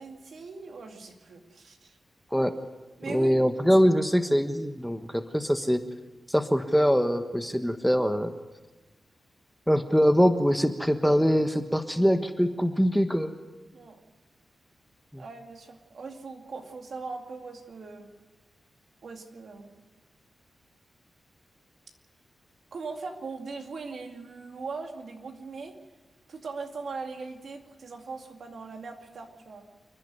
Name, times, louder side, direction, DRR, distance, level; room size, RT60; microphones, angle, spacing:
voice 1, 0.0-2.0 3.0-3.3 13.7-14.0 15.2-18.1 19.0-19.8 22.7-25.8 26.3-29.7, right 4 dB, 70° right, 3 dB, 2.4 m, -40 dB
voice 2, 3.1-5.8 6.3-8.3 9.7-13.3 15.1-15.2, equal, ahead, 7 dB, 1.4 m, -23 dB
29.0 x 10.5 x 9.3 m, 1.2 s
cardioid pair, 75°, 0 cm